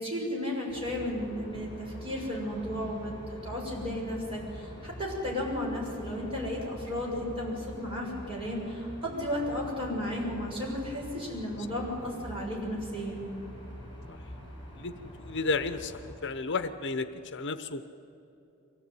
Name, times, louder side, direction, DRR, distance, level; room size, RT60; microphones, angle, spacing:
voice 1, 0.0-13.2, left 1 dB, 25° right, -3 dB, 7.0 m, -34 dB
sound 1, 0.7-16.2, left 1 dB, 25° left, 7.1 m, -45 dB
voice 2, 14.8-15.9 16.2-17.9, left 3 dB, 55° left, 10 dB, 0.9 m, -32 dB
24.0 x 17.0 x 9.4 m, 2.9 s
head